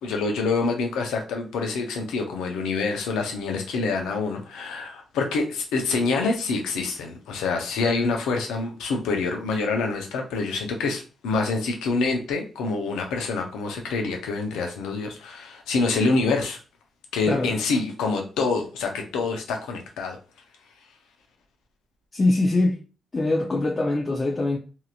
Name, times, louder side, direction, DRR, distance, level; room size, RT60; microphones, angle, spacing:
voice 1, 0.0-16.6 17.1-20.2, left 3 dB, 90° left, 0.6 m, -26 dB
voice 2, 22.1-22.8 23.1-24.6, left 2 dB, 40° left, 0.6 m, -23 dB
2.9 x 2.6 x 2.4 m
supercardioid pair, 55°, 0 cm